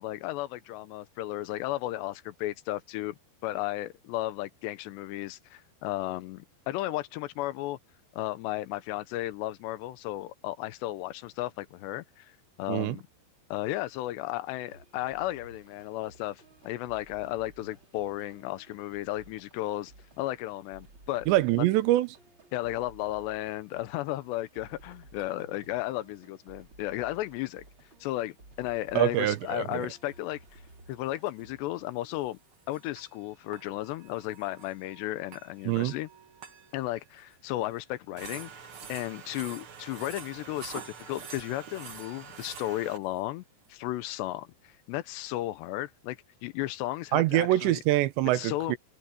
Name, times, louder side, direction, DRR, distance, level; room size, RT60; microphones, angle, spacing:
voice 1, 0.0-7.8 8.1-12.3 12.6-13.0 13.5-21.3 21.6-21.7 22.5-27.6 28.0-30.6 30.9-32.4 32.7-36.1 36.7-38.5 38.9-43.4 43.7-47.8 48.3-48.8, left 16 dB, 80° left, 3.0 m, -34 dB
sound 1, 14.6-32.3, right 2 dB, 25° right, 6.1 m, -56 dB
voice 2, 21.3-22.1 28.9-29.9 35.7-35.9 47.1-48.8, right 15 dB, 85° right, 3.2 m, -25 dB
sound 2, 24.4-24.5 25.2-25.3 27.0-27.1 29.0-30.2 30.5-30.7 30.9-31.0 31.3-31.4 32.2-37.3 37.7-37.8 38.2-43.2, right 6 dB, 65° right, 1.3 m, -47 dB
omnidirectional pair, 4.9 m